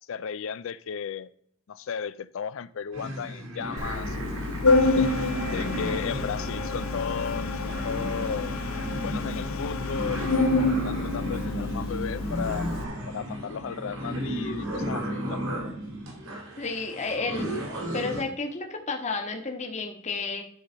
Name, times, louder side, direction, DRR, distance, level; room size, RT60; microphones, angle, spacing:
voice 1, 0.1-1.3 1.7-4.2 4.7-8.6 9.0-12.7 13.1-15.4, left 7 dB, 65° left, 0.4 m, -35 dB
sound 1, 2.9-18.2, equal, 90° right, 3.2 m, -34 dB
Organ, 3.8-12.8, left 3 dB, 85° left, 1.0 m, -28 dB
voice 2, 16.6-17.5 17.9-20.4, left 3 dB, 35° left, 1.3 m, -31 dB
11.5 x 4.1 x 5.6 m
head